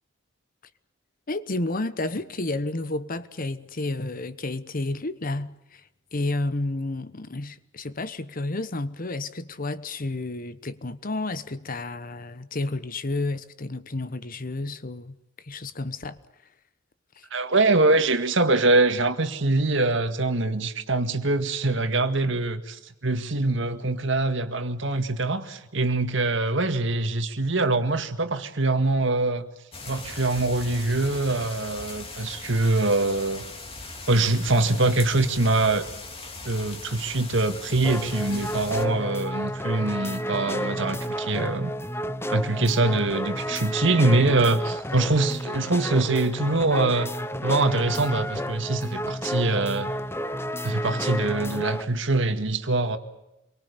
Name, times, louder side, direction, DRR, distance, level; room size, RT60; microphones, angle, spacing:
voice 1, 1.3-5.8 6.1-15.1 15.4-16.2 17.2-17.3, left 2 dB, 45° left, 1.1 m, -31 dB
voice 2, 17.3-29.5 29.9-33.4 34.1-35.9 36.5-41.7 42.3-47.1 47.4-49.9 50.6-53.0, right 2 dB, 65° right, 2.0 m, -24 dB
sound 1, 29.7-38.9, left 3 dB, 30° left, 2.9 m, -39 dB
sound 2, 37.8-51.9, equal, 10° left, 0.9 m, -31 dB
27.5 x 23.5 x 6.9 m
head